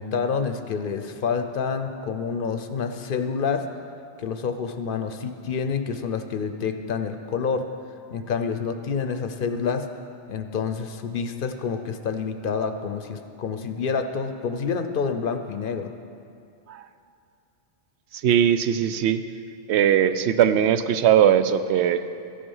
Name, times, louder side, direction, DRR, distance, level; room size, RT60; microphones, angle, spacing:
voice 1, 0.0-3.7 4.2-7.7 8.1-9.9 10.3-15.9, left 5 dB, 60° left, 8 dB, 0.7 m, -28 dB
voice 2, 18.1-19.2 19.7-22.0, right 9 dB, 80° right, 11 dB, 0.8 m, -20 dB
13.5 x 8.6 x 5.5 m, 2.5 s
omnidirectional pair, 1.1 m